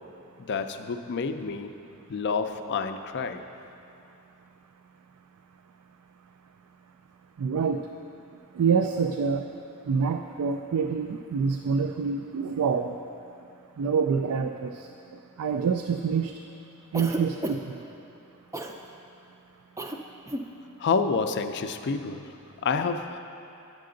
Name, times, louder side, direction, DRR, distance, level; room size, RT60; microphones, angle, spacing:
voice 1, 0.4-1.7 2.1-3.4 20.8-23.2, left 5 dB, 50° left, 8 dB, 0.4 m, -29 dB
voice 2, 7.4-7.8 8.5-9.5 9.9-12.9 13.8-14.9 15.4-16.3 16.9-17.8, right 6 dB, 85° right, 6 dB, 0.3 m, -26 dB
Cough, 16.9-17.8 18.5-18.8 19.8-20.0 20.2-20.5, right 1 dB, 15° right, 0.4 m, -32 dB
9.4 x 7.6 x 3.8 m, 2.6 s
head